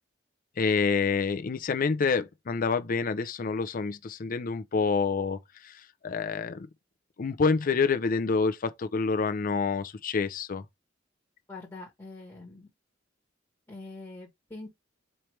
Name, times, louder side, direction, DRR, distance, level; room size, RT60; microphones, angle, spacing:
voice 1, 0.6-6.7 7.2-10.6, left 5 dB, 45° left, 0.5 m, -27 dB
voice 2, 11.5-12.7 13.7-14.7, left 2 dB, 15° left, 1.2 m, -44 dB
4.5 x 3.2 x 3.1 m
head